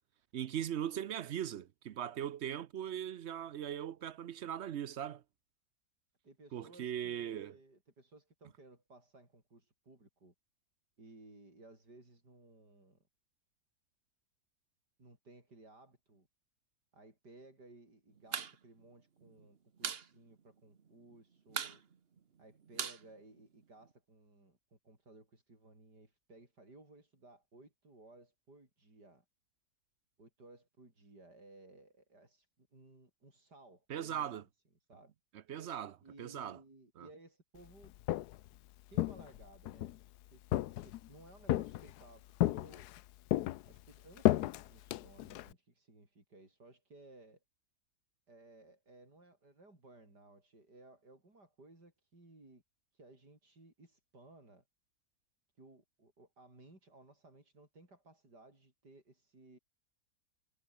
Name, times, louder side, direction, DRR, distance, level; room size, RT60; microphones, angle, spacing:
voice 1, 0.3-5.2 6.5-7.6 33.9-34.4 35.5-36.6 37.0-37.1, right 10 dB, 60° right, 0.7 m, -39 dB
voice 2, 6.2-10.3 11.0-13.0 15.0-16.3 16.9-21.8 22.4-29.2 30.2-34.5 34.9-35.1 36.0-37.9 38.9-40.0 40.3-42.9 43.7-47.4 48.3-52.6 52.9-54.6 55.6-59.6, right 2 dB, 85° right, 7.6 m, -59 dB
sound 1, 18.2-18.5 18.8-18.9 19.2-20.1 20.4-20.5 20.8-21.2 21.5-23.9, right 6 dB, 40° right, 1.2 m, -40 dB
Walk footsteps, 37.8-38.5 38.9-40.0 40.5-41.1 41.5-42.0 42.4-43.0 43.3-45.5, left 15 dB, 75° left, 1.1 m, -33 dB
omnidirectional pair, 1.7 m